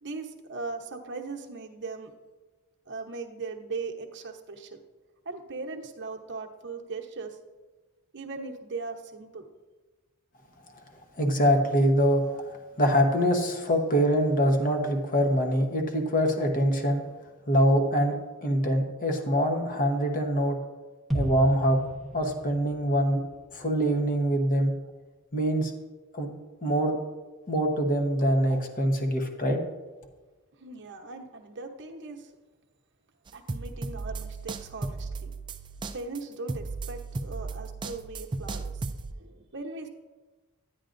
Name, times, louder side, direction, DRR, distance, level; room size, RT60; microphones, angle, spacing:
voice 1, 0.0-2.1 2.9-4.8 5.2-7.4 8.1-9.5 30.6-32.3 33.3-35.3 35.9-38.8 39.1-39.9, right 3 dB, 55° right, 3 dB, 0.9 m, -39 dB
voice 2, 11.2-12.5 12.8-17.0 17.5-20.6 21.1-21.8 22.1-23.2 23.5-24.7 25.3-25.7 26.1-26.3 26.6-27.0 27.5-29.6, equal, 40° left, 4 dB, 1.0 m, -24 dB
sound 1, 21.1-25.0 25.4-25.5, equal, ahead, 1.0 m, -36 dB
sound 2, 33.3-39.1, right 3 dB, 20° right, 0.3 m, -35 dB
10.0 x 10.0 x 2.6 m, 1.3 s
head